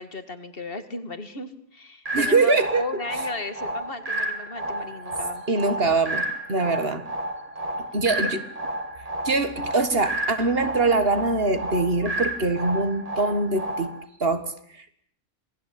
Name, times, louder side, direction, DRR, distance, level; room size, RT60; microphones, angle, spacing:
voice 1, 0.0-5.4, left 2 dB, 40° left, 2.3 m, -35 dB
sound 1, 2.0-14.0, right 1 dB, 25° right, 1.7 m, -31 dB
voice 2, 2.1-2.8 5.5-7.1 7.9-8.4 9.2-13.9 14.2-15.0, right 3 dB, 45° right, 1.9 m, -23 dB
27.0 x 19.0 x 8.6 m
omnidirectional pair, 1.4 m